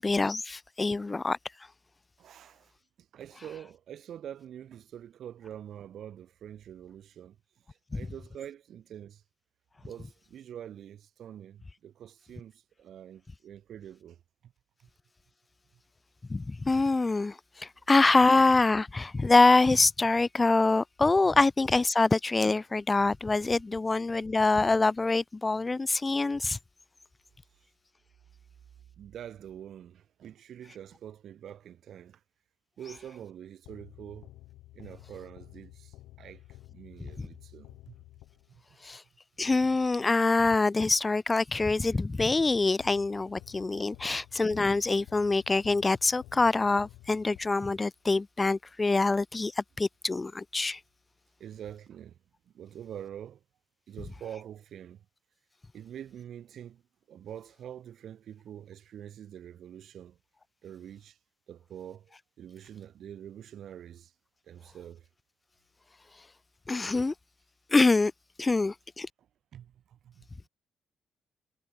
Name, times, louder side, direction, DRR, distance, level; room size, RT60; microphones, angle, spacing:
voice 1, 0.0-1.4 16.3-26.6 38.8-39.0 39.4-50.8 66.7-67.1 67.7-68.1 68.4-69.1, left 3 dB, 30° left, 0.8 m, -25 dB
voice 2, 2.2-2.7 3.0-7.4 7.7-9.2 9.8-14.5 14.8-14.9 29.0-32.2 32.8-34.3 34.7-37.9 38.5-38.8 43.8-43.9 51.4-52.2 52.4-53.4 53.9-55.0 55.7-56.8 57.1-60.2 60.6-61.2 61.5-64.1 64.4-65.1 69.5-70.5, right 10 dB, 70° right, 3.4 m, -46 dB
sound 1, 33.6-38.8 42.8-48.0, left 16 dB, 80° left, 5.1 m, -52 dB
hypercardioid pair, 50°, 0 cm